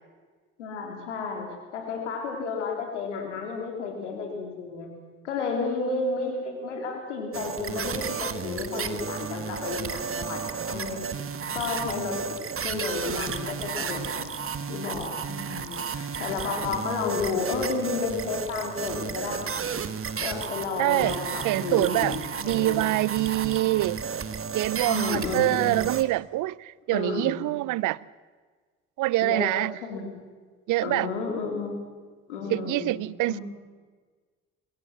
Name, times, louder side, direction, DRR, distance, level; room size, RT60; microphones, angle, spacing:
voice 1, 0.6-1.5 1.7-4.9 5.2-11.0 11.5-12.2 12.6-14.3 14.7-19.7 20.2-22.1 22.4-22.9 24.9-25.8 26.9-27.4 29.2-29.5 29.9-30.1 30.8-31.7 32.3-33.0 33.3-33.4, left 4 dB, 90° left, 3.6 m, -32 dB
sound 1, 7.3-26.0, right 6 dB, 40° right, 1.6 m, -33 dB
voice 2, 20.8-21.2 21.4-24.0 24.5-28.0 29.0-29.8 30.7-31.1 32.5-33.4, right 18 dB, 65° right, 0.6 m, -25 dB
22.5 x 16.0 x 7.5 m
hypercardioid pair, 55°, 34 cm